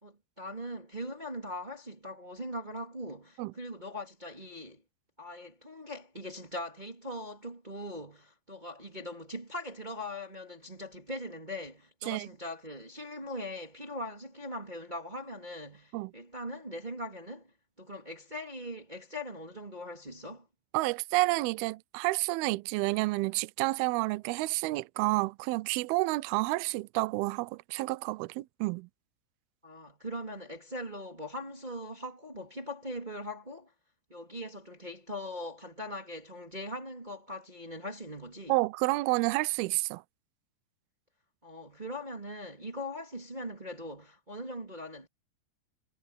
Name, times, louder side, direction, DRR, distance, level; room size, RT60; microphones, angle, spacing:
voice 1, 0.0-4.8 5.2-17.5 17.8-20.5 29.6-33.7 34.1-38.6 41.4-45.1, left 1 dB, 15° right, 1.5 m, -41 dB
voice 2, 20.7-28.9 38.5-40.0, right 22 dB, 85° right, 2.2 m, -29 dB
omnidirectional pair, 5.1 m